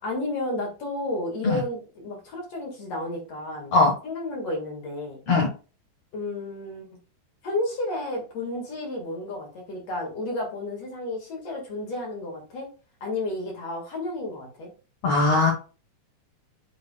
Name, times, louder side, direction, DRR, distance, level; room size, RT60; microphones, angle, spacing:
voice 1, 0.0-3.7 4.0-5.2 6.1-6.9 7.4-12.7 13.0-14.7, left 2 dB, 50° left, 0 dB, 2.2 m, -32 dB
voice 2, 15.0-15.5, left 3 dB, 75° left, 0 dB, 1.5 m, -19 dB
10.0 x 4.7 x 2.2 m, 0.35 s
omnidirectional pair, 4.9 m